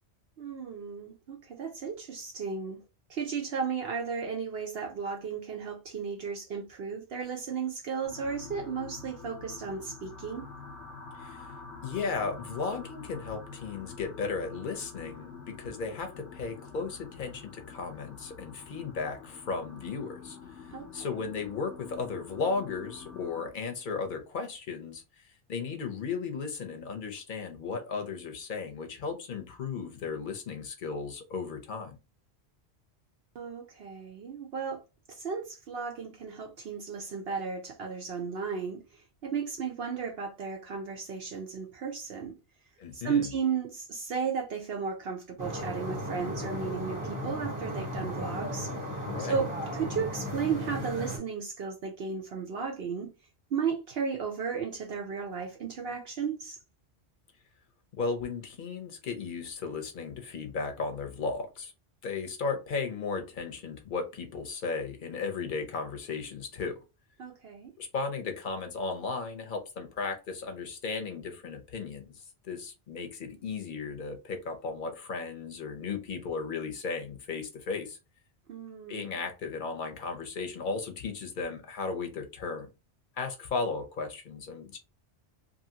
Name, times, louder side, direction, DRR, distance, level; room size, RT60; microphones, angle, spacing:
voice 1, 0.4-2.8 3.1-10.5 20.7-21.3 33.3-34.8 35.1-42.4 42.9-48.7 49.2-53.1 53.5-56.6 67.2-67.7 78.5-79.2, right 6 dB, 65° right, 0.8 m, -34 dB
sound 1, 8.0-23.5, left 5 dB, 90° left, 1.0 m, -47 dB
voice 2, 11.1-11.5 11.8-20.7 20.9-32.0 42.8-43.3 49.0-49.3 58.0-61.7 62.0-66.8 67.8-78.0 78.9-82.7 83.2-84.8, left 4 dB, 50° left, 0.8 m, -35 dB
sound 2, 45.4-51.2, equal, 20° right, 0.9 m, -35 dB
2.7 x 2.7 x 2.7 m
omnidirectional pair, 1.2 m